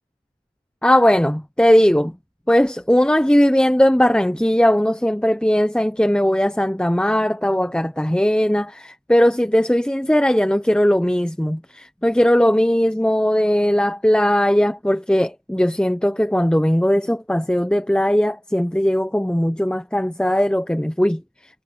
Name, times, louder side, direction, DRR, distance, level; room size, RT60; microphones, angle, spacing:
voice 1, 0.8-2.1 2.5-21.2, equal, 5° left, 0.5 m, -18 dB
head